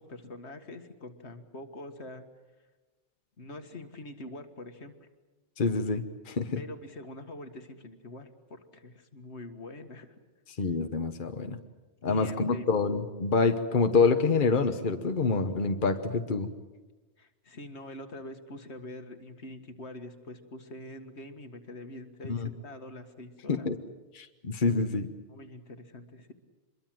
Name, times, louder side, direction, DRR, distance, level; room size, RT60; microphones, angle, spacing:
voice 1, 0.0-2.3 3.4-5.1 6.6-10.1 12.1-12.7 17.2-23.7 25.3-26.3, left 1 dB, 80° left, 7 dB, 2.0 m, -44 dB
voice 2, 5.6-6.6 10.6-11.6 12.0-16.5 22.3-22.5 23.5-23.8 24.1-25.1, left 4 dB, 50° left, 7 dB, 1.3 m, -27 dB
26.0 x 22.5 x 7.7 m, 1.2 s
omnidirectional pair, 1.1 m